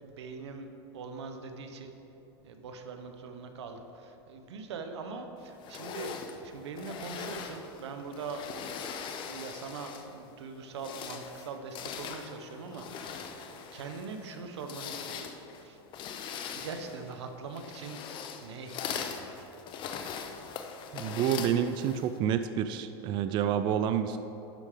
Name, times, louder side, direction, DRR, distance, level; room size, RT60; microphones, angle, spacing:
voice 1, 0.0-0.7 0.9-1.9 2.4-6.1 6.4-8.8 9.1-15.2 15.6-15.8 16.6-18.0 18.4-19.5, right 4 dB, 90° right, 6 dB, 0.9 m, -42 dB
sound 1, 5.6-10.2 10.6-22.2, left 7 dB, 35° left, 0.7 m, -41 dB
voice 2, 20.9-24.2, right 9 dB, 35° right, 10 dB, 0.3 m, -28 dB
11.5 x 4.9 x 5.0 m, 3.0 s
supercardioid pair, 130°, 14 cm